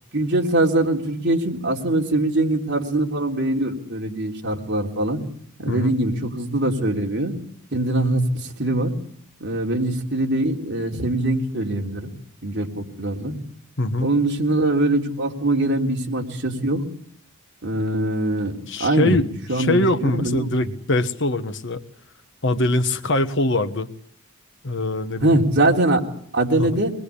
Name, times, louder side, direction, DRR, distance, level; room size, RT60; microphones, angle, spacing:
voice 1, 0.1-5.2 5.6-7.4 7.7-9.0 9.4-12.1 12.4-13.4 14.0-16.8 17.6-18.5 18.8-19.2 19.5-20.7 25.2-26.0 26.3-26.9, right 1 dB, 55° right, 0 dB, 3.7 m, -22 dB
voice 2, 13.8-14.1 18.7-21.8 22.4-23.9 24.6-25.4 26.6-26.7, left 2 dB, 55° left, 9 dB, 1.4 m, -23 dB
24.5 x 22.0 x 8.5 m, 0.64 s
head